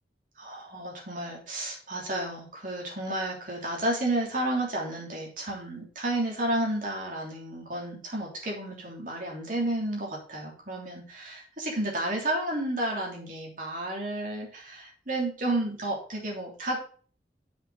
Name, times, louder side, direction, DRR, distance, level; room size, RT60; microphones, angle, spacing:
voice 1, 0.4-16.8, right 1 dB, 50° right, -2 dB, 3.2 m, -31 dB
7.2 x 6.2 x 4.8 m, 0.42 s
head